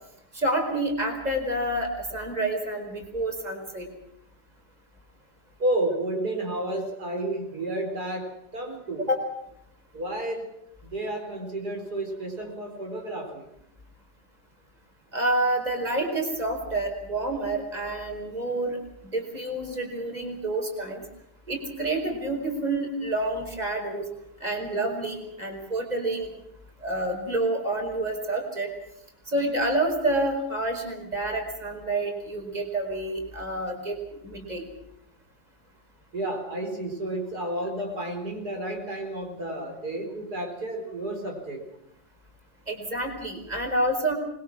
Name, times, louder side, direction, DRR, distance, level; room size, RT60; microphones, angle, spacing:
voice 1, 0.3-3.8 9.0-9.2 15.1-21.0 21.5-24.0 24.4-26.3 26.8-28.7 29.3-34.7 42.7-44.1, right 1 dB, 25° right, 3 dB, 4.9 m, -28 dB
voice 2, 5.6-9.1 9.9-10.5 10.8-13.5 36.1-41.7, right 1 dB, 75° right, 2 dB, 5.2 m, -31 dB
25.5 x 22.0 x 6.2 m, 0.78 s
omnidirectional pair, 1.7 m